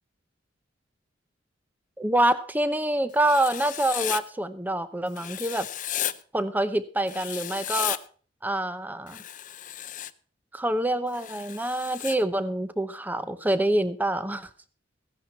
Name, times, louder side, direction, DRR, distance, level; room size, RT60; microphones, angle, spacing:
voice 1, 2.0-5.7 6.3-8.0 8.4-9.2 10.5-14.5, right 1 dB, 10° right, 12 dB, 0.7 m, -26 dB
Writing, 3.2-4.2 5.2-6.1 7.1-8.0 9.1-10.1 11.1-12.2, left 11 dB, 45° left, 0.5 m, -34 dB
15.5 x 10.5 x 4.4 m, 0.42 s
head